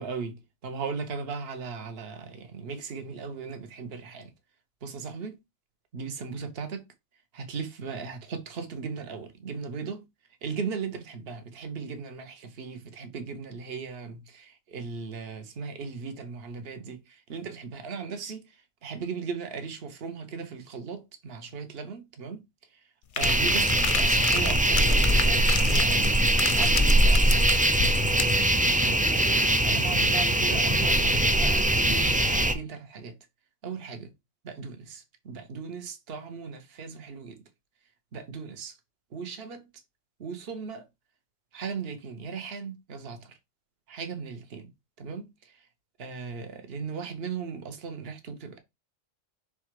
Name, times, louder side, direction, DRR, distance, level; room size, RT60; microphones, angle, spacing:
voice 1, 0.0-4.3 4.8-5.4 5.9-6.8 7.3-10.0 10.4-18.4 18.8-22.4 23.2-26.1 26.5-27.5 28.7-29.2 29.6-33.1 33.6-34.1 34.4-37.4 38.1-38.7 39.1-39.7 40.2-40.9 41.5-43.3 43.9-44.7 45.0-45.6 46.0-48.6, right 5 dB, 55° right, 1.3 m, -37 dB
sound 1, 23.2-28.4, left 9 dB, 55° left, 0.6 m, -33 dB
sound 2, 23.2-32.5, right 1 dB, 10° right, 0.4 m, -22 dB
5.9 x 3.6 x 4.7 m
omnidirectional pair, 1.2 m